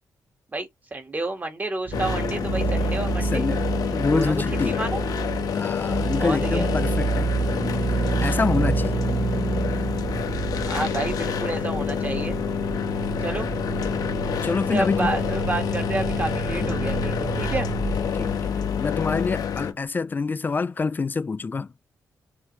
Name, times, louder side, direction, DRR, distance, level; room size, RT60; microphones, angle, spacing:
voice 1, 0.5-3.4 4.1-5.0 6.2-6.7 10.6-12.3 13.2-13.5 14.5-17.7, right 2 dB, 25° right, 1.5 m, -30 dB
sound 1, 1.9-19.7, left 7 dB, 75° left, 1.0 m, -28 dB
sound 2, 1.9-19.4 19.7-19.8, right 5 dB, 55° right, 1.0 m, -29 dB
voice 2, 3.2-3.6 3.9-4.8 5.5-7.3 8.2-9.0 14.4-15.1 16.6-16.7 18.1-21.7, left 4 dB, 30° left, 0.4 m, -26 dB
5.6 x 2.9 x 3.1 m
cardioid pair, 95°, 7 cm